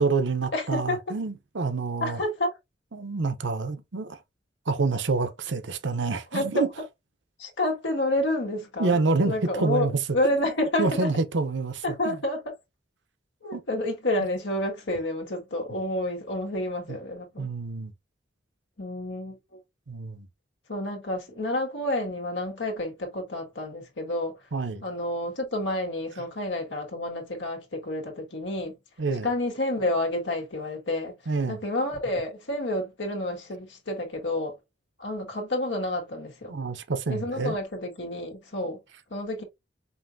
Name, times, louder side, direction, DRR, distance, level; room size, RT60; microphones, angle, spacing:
voice 1, 0.0-2.2 2.9-4.2 4.7-6.7 8.8-9.9 10.8-12.2 13.5-13.6 16.9-17.0 17.4-17.9 19.9-20.3 24.5-24.8 29.0-29.3 31.3-31.6 36.5-37.5, right 3 dB, 90° right, 0.7 m, -27 dB
voice 2, 0.5-1.0 2.0-2.5 6.3-6.6 7.4-9.0 9.3-11.1 11.8-12.4 13.4-17.5 18.8-19.4 20.7-24.3 24.8-28.8 29.2-31.1 31.5-34.6 35.0-36.5 37.1-38.8 39.1-39.4, left 1 dB, 90° left, 1.6 m, -29 dB
5.5 x 2.6 x 2.6 m
head